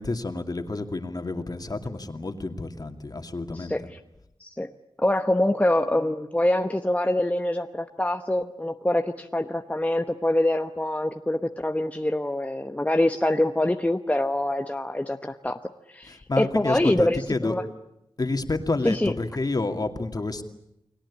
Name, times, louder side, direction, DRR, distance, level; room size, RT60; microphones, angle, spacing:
voice 1, 0.0-3.9 16.0-17.6 18.2-20.4, left 3 dB, 45° left, 6 dB, 2.5 m, -29 dB
voice 2, 3.5-3.8 4.4-4.7 5.0-15.6 15.9-17.6 18.8-19.1, left 1 dB, 15° left, 6 dB, 1.0 m, -25 dB
30.0 x 21.5 x 8.6 m, 0.84 s
wide cardioid pair, 100°, 10 cm